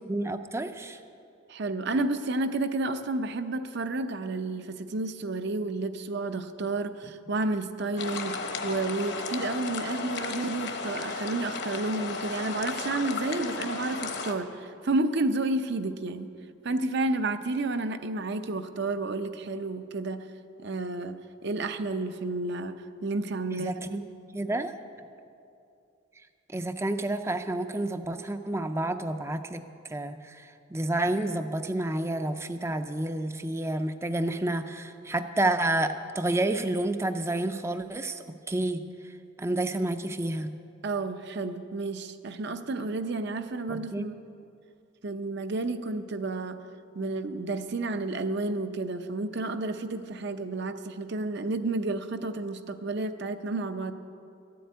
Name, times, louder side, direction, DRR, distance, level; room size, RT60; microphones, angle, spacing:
voice 1, 0.1-1.0 23.5-24.0 24.3-24.7 26.5-40.5 43.7-44.0, right 1 dB, 15° right, 9 dB, 0.5 m, -30 dB
voice 2, 1.5-16.3 16.6-20.2 20.6-21.2 21.4-22.7 23.0-23.8 40.8-44.1 45.0-46.6 46.9-53.9, right 2 dB, 55° right, 9 dB, 0.7 m, -31 dB
sound 1, 8.0-14.3, left 4 dB, 55° left, 1.0 m, -34 dB
13.5 x 7.8 x 9.4 m, 2.6 s
head